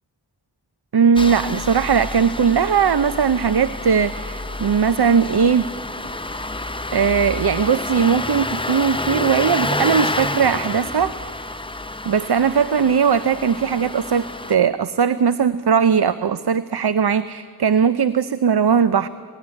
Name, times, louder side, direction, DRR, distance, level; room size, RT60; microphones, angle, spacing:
voice 1, 0.9-5.7 6.9-11.2 12.0-19.1, right 6 dB, 75° right, 14 dB, 0.7 m, -19 dB
Engine starting, 1.2-14.6, left 2 dB, 15° left, 0.8 m, -28 dB
26.5 x 18.5 x 9.8 m, 2.2 s
wide cardioid pair, 60°, 39 cm